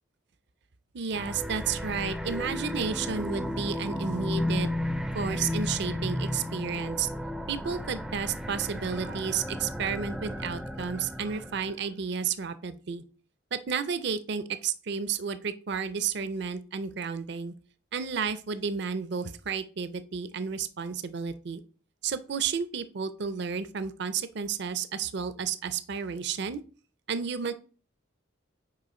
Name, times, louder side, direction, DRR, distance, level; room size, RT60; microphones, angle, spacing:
voice 1, 0.9-4.7 5.1-7.1 7.5-13.0 13.5-17.5 17.9-21.6 22.0-26.6 27.1-27.5, right 6 dB, 55° right, 12 dB, 0.5 m, -32 dB
sound 1, 1.1-11.7, left 1 dB, ahead, 0.4 m, -33 dB
6.2 x 4.9 x 4.2 m, 0.38 s
head